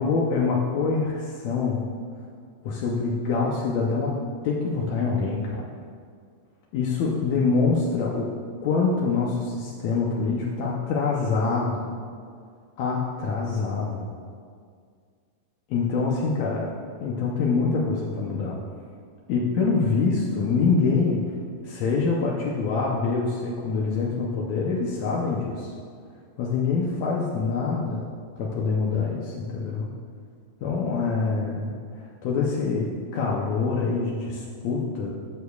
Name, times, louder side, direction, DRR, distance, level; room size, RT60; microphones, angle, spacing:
voice 1, 0.0-1.8 2.6-4.1 4.4-5.6 6.7-8.3 8.6-11.9 12.8-14.1 15.7-16.7 17.0-18.6 19.3-21.4 21.6-25.7 26.4-28.1 28.4-29.9 30.6-35.1, left 4 dB, 80° left, -3 dB, 1.6 m, -25 dB
16.0 x 6.5 x 2.4 m, 2.1 s
omnidirectional pair, 4.1 m